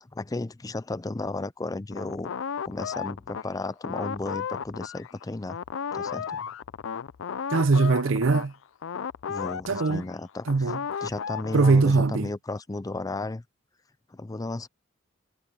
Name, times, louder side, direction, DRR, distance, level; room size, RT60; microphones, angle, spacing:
voice 1, 0.0-2.3 2.6-5.6 5.9-6.5 9.3-10.7 11.0-13.4 14.1-14.7, left 2 dB, 20° left, 0.4 m, -34 dB
sound 1, 1.9-5.2 5.5-11.8, left 7 dB, 75° left, 0.4 m, -34 dB
voice 2, 7.5-8.5 9.7-10.0 10.5-10.8 11.5-12.3, right 3 dB, 75° right, 0.6 m, -21 dB
head